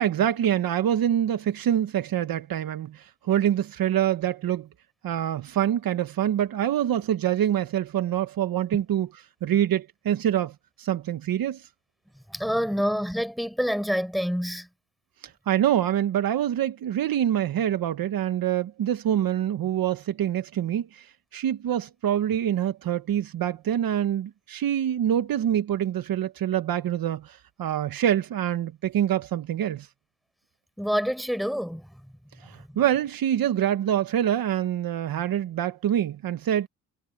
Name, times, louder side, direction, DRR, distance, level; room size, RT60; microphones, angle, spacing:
voice 1, 0.0-4.7 5.0-9.1 9.4-11.7 15.5-29.9 32.4-36.7, right 10 dB, 65° right, 1.3 m, -25 dB
voice 2, 12.3-14.7 30.8-31.9, equal, ahead, 7.2 m, -27 dB
cardioid pair, 90°, 37 cm